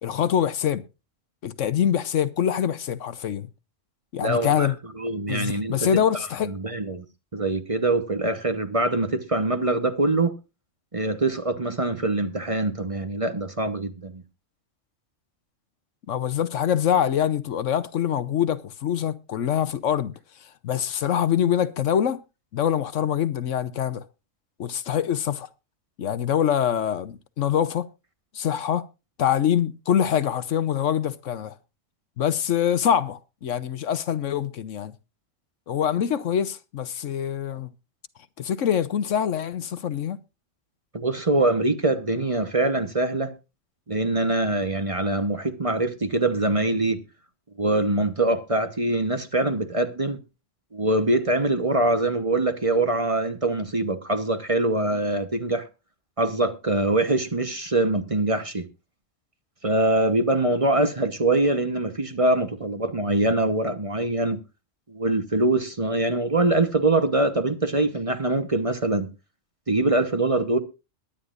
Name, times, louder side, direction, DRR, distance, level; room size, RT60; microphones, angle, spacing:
voice 1, 0.0-0.8 1.4-3.5 4.1-4.7 5.3-6.7 16.1-20.1 20.6-22.2 22.5-24.0 24.6-25.5 26.0-27.9 28.3-28.8 29.2-31.5 32.2-34.9 35.7-37.7 38.4-40.2, left 9 dB, 70° left, 1.2 m, -24 dB
voice 2, 4.2-4.7 5.0-6.0 6.5-7.0 7.3-10.3 10.9-14.2 40.9-43.3 43.9-47.0 47.6-50.2 50.7-55.7 56.2-58.7 59.6-64.4 64.9-69.1 69.7-70.6, right 2 dB, 30° right, 1.1 m, -23 dB
22.0 x 9.9 x 2.5 m
omnidirectional pair, 1.3 m